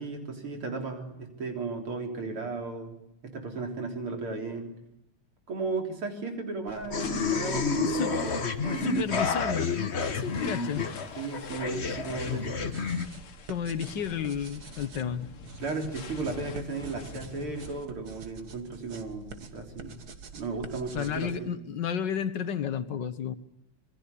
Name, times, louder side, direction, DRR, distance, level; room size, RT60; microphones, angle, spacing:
voice 1, 0.0-3.0 3.2-4.7 5.5-9.0 11.2-12.6 15.6-20.0 20.3-21.5, right 4 dB, 85° right, 4 dB, 4.5 m, -35 dB
sound 1, 6.7-17.9, left 5 dB, 85° left, 2.6 m, -46 dB
sound 2, 6.9-13.0, left 5 dB, 35° left, 1.4 m, -30 dB
voice 2, 7.7-10.9 13.5-15.3 20.9-23.3, left 7 dB, 60° left, 12 dB, 1.9 m, -32 dB
sound 3, 12.5-21.3, right 5 dB, 50° right, 2.1 m, -46 dB
27.0 x 21.0 x 8.5 m, 0.81 s
omnidirectional pair, 2.3 m